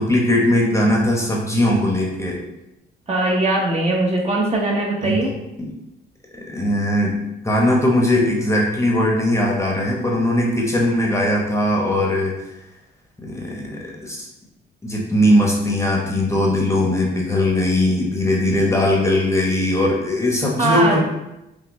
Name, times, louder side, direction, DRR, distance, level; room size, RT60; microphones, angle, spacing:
voice 1, 0.0-2.4 5.0-5.2 5.6-5.7 6.5-7.2 7.4-12.3 13.2-14.2 14.8-21.0, left 1 dB, 15° left, -2 dB, 0.9 m, -19 dB
voice 2, 3.1-5.3 20.6-21.0, right 2 dB, 35° right, -2 dB, 1.0 m, -20 dB
6.0 x 2.2 x 3.1 m, 0.90 s
cardioid pair, 90°, 20 cm